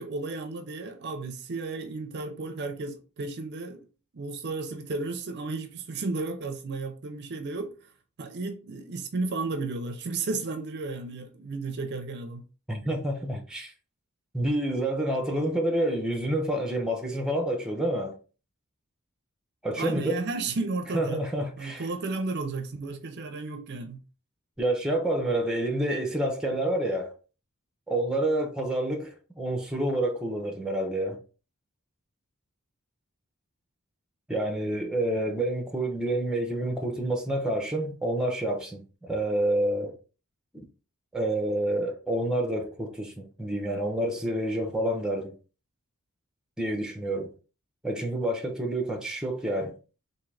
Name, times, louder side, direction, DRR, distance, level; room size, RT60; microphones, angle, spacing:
voice 1, 0.0-3.8 4.1-7.8 8.2-12.4 19.8-21.2 21.6-24.0, right 3 dB, 50° right, 0.5 m, -33 dB
voice 2, 12.7-13.7 14.3-18.2 19.6-20.2 20.9-21.8 24.6-27.1 27.9-31.2 34.3-39.9 40.5-40.6 41.1-45.3 46.6-47.3 47.8-49.7, right 1 dB, 5° right, 0.6 m, -28 dB
3.7 x 2.6 x 3.2 m
head